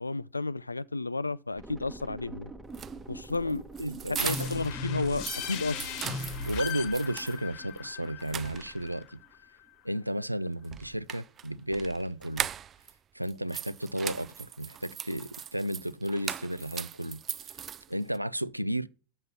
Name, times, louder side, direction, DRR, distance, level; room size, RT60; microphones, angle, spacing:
voice 1, 0.0-2.5 3.1-3.6 4.1-5.9, left 3 dB, 80° left, 0.4 m, -32 dB
sound 1, 1.6-9.3 9.6-9.7, right 3 dB, 10° right, 1.0 m, -47 dB
sound 2, 2.6-4.7 5.0-7.4 7.8-7.9 8.2-9.0 10.6-12.9 13.2-18.2, right 9 dB, 25° right, 0.4 m, -39 dB
voice 2, 3.8-4.3 6.5-9.2 9.8-12.5 13.1-17.2 17.9-18.9, right 1 dB, 90° right, 0.4 m, -33 dB
sound 3, 4.2-9.6, left 5 dB, 45° left, 1.2 m, -38 dB
7.3 x 6.6 x 7.0 m
figure-of-eight pair, 90°, 0 cm